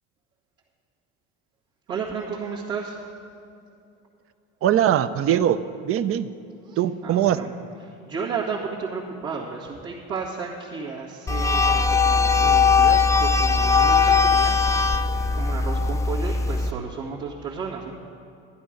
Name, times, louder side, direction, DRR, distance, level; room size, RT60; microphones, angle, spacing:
voice 1, 1.9-3.0 6.6-7.5 7.8-17.9, right 5 dB, 75° right, -7 dB, 2.0 m, -33 dB
voice 2, 4.6-5.6 5.8-6.3 6.8-7.4, right 11 dB, 45° right, 13 dB, 0.6 m, -21 dB
sound 1, 11.3-16.7, left 5 dB, 10° left, 0.4 m, -20 dB
11.5 x 11.0 x 5.2 m, 2.5 s
supercardioid pair, 100°, 31 cm